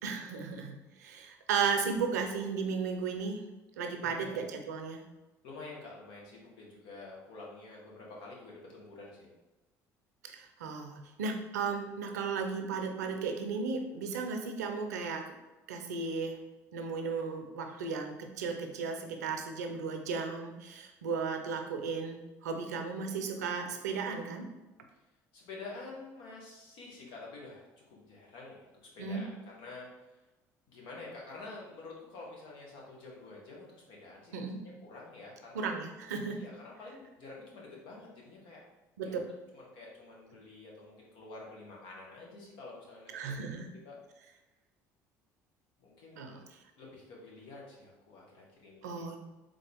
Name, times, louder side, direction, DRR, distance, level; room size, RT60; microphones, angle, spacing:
voice 1, 0.0-3.4 3.8-5.0 10.2-15.3 15.7-16.4 16.7-24.5 29.0-29.2 34.3-34.6 35.5-36.4 39.0-39.1 43.1-43.7 46.2-46.4 48.8-49.2, right 5 dB, 90° right, 5 dB, 0.5 m, -35 dB
voice 2, 4.0-4.4 5.4-9.3 25.3-29.9 30.7-35.7 36.3-38.6 39.0-43.5 43.8-43.9 45.8-46.5 46.8-49.1, left 3 dB, 70° left, -2 dB, 1.4 m, -48 dB
3.8 x 3.8 x 3.5 m, 1.1 s
hypercardioid pair, 70°, 9 cm